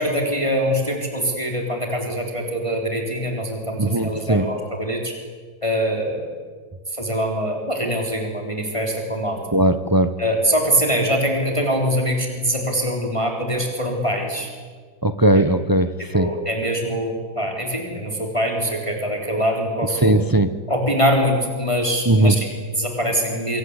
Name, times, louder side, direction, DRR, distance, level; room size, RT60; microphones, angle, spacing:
voice 1, 0.0-5.2 5.6-6.4 6.9-9.4 10.2-14.5 15.3-15.4 16.1-20.2 20.7-23.6, equal, 15° left, 1 dB, 3.8 m, -23 dB
voice 2, 3.8-4.5 9.5-10.1 15.0-16.3 20.0-20.6 22.1-22.4, right 1 dB, 35° right, 11 dB, 0.3 m, -18 dB
26.5 x 25.0 x 8.1 m, 1.5 s
omnidirectional pair, 2.0 m